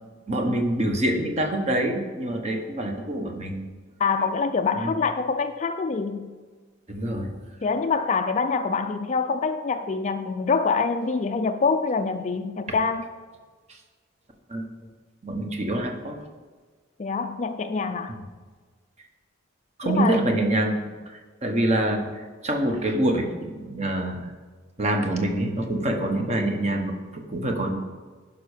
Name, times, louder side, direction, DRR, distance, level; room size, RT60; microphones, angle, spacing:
voice 1, 0.3-3.6 4.7-4.9 6.9-7.3 13.7-13.8 14.5-14.7 15.2-16.2 18.1-18.2 19.8-24.3 24.8-27.7, right 1 dB, 35° right, 1.1 m, -26 dB
voice 2, 4.0-6.3 7.6-13.1 17.0-18.2 19.8-20.2, left 4 dB, 35° left, 0.4 m, -25 dB
11.0 x 5.4 x 5.0 m
head